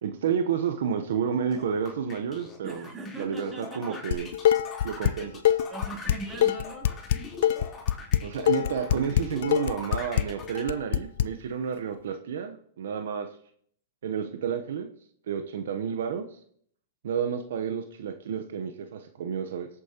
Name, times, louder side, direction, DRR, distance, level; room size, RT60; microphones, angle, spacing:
voice 1, 0.0-2.9 3.2-4.3 4.8-5.3 8.2-13.3 14.0-14.9 15.3-16.3 17.0-19.7, right 7 dB, 75° right, 7 dB, 0.9 m, -30 dB
sound 1, 1.5-10.6, left 5 dB, 20° left, 3.6 m, -42 dB
voice 2, 2.6-4.1 5.2-5.3 5.7-6.9, right 2 dB, 15° right, 0 dB, 3.4 m, -40 dB
Dishes pots and pans, 4.1-5.1 5.4-11.2, left 11 dB, 70° left, 0.5 m, -24 dB
18.5 x 8.5 x 2.9 m, 0.64 s
hypercardioid pair, 130°, 0 cm